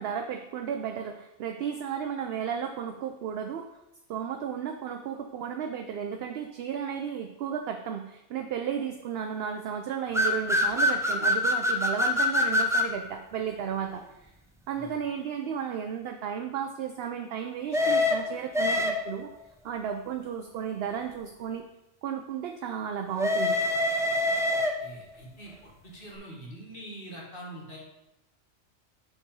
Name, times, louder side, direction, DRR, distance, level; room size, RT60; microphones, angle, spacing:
voice 1, 0.0-3.7 4.1-14.3 14.7-19.3 19.6-21.6 22.0-23.6, right 8 dB, 65° right, 5 dB, 0.7 m, -34 dB
sound 1, 10.1-12.9 17.7-19.3 23.2-25.0, left 1 dB, 5° right, 0.4 m, -25 dB
voice 2, 24.8-25.5 25.8-27.8, right 1 dB, 50° left, -3 dB, 2.0 m, -44 dB
7.0 x 4.1 x 5.4 m, 0.92 s
omnidirectional pair, 1.2 m